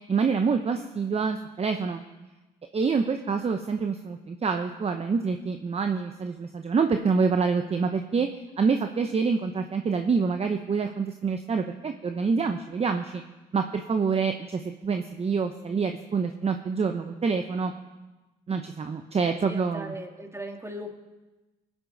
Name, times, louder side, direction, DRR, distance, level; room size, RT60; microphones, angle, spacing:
voice 1, 0.1-2.0 2.7-8.3 8.6-13.2 13.5-17.7 18.5-19.9, right 5 dB, 35° right, 6 dB, 0.8 m, -26 dB
voice 2, 19.5-21.0, equal, 15° right, 3 dB, 2.2 m, -38 dB
19.0 x 10.0 x 4.0 m, 1.1 s
supercardioid pair, 65°, 18 cm